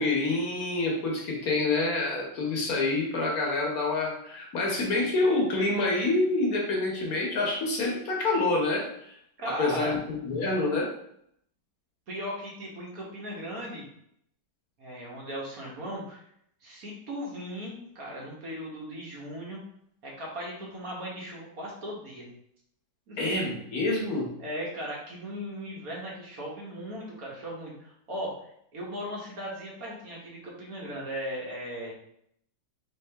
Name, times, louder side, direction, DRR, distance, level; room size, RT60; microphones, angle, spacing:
voice 1, 0.0-9.2 9.4-10.9 23.2-24.3, left 2 dB, 60° left, -1 dB, 1.3 m, -27 dB
voice 2, 9.4-10.0 12.1-13.8 14.8-16.2 16.6-19.6 20.0-22.3 23.1-23.2 24.4-28.3 28.7-31.9, equal, 55° right, -3 dB, 1.6 m, -37 dB
3.7 x 3.6 x 3.3 m, 0.72 s
omnidirectional pair, 1.8 m